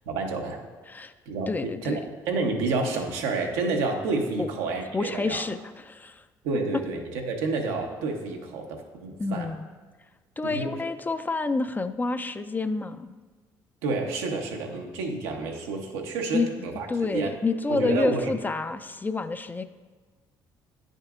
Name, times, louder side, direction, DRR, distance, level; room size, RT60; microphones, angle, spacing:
voice 1, 0.1-0.6 1.3-1.5 1.8-1.9 2.3-5.4 6.4-9.5 10.4-10.8 13.8-16.9 17.1-17.3 17.7-18.3, right 3 dB, 90° right, 2 dB, 0.8 m, -29 dB
voice 2, 1.5-2.0 4.4-4.5 4.9-6.2 9.2-9.7 10.4-13.1 16.3-16.5 16.9-19.6, left 3 dB, 20° left, 11 dB, 0.4 m, -28 dB
8.9 x 6.4 x 2.4 m, 1.3 s
supercardioid pair, 70°, 9 cm